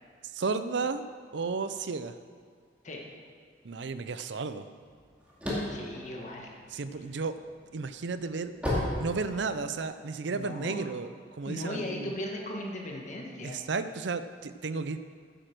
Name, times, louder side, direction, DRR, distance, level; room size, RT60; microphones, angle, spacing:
voice 1, 0.3-1.1 1.3-2.1 3.6-4.6 6.7-7.4 7.7-8.5 9.0-12.1 13.4-15.0, right 4 dB, 70° right, 12 dB, 0.6 m, -33 dB
sound 1, 4.9-7.1 7.6-9.8, left 1 dB, 5° right, 2.3 m, -32 dB
voice 2, 5.5-6.6 10.3-10.9 11.4-13.6, left 1 dB, 40° left, 0 dB, 1.6 m, -38 dB
10.0 x 8.8 x 6.2 m, 2.1 s
head